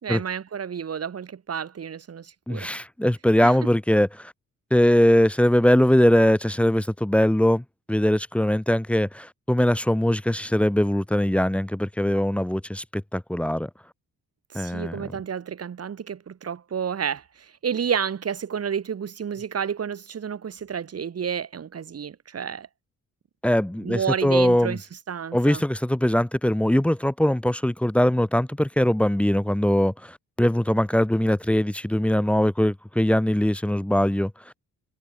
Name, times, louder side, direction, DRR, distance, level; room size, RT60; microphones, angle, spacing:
voice 1, 0.0-2.7 3.4-3.6 14.5-22.7 23.8-25.6, right 7 dB, 50° right, 4.6 m, -30 dB
voice 2, 2.5-4.3 4.7-13.7 14.5-15.0 23.4-24.8 25.3-34.3, equal, 5° left, 0.6 m, -21 dB
wide cardioid pair, 165°, 32 cm